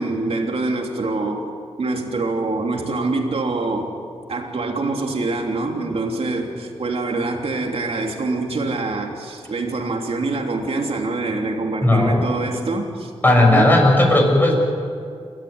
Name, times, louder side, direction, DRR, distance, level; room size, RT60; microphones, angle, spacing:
voice 1, 0.0-1.4 1.8-3.9 4.3-13.1 13.4-13.8, right 3 dB, 65° right, 2 dB, 3.1 m, -25 dB
voice 2, 11.8-12.2 13.2-14.6, left 1 dB, 20° left, 1 dB, 6.3 m, -15 dB
29.5 x 13.5 x 9.5 m, 2.3 s
wide cardioid pair, 95°, 11 cm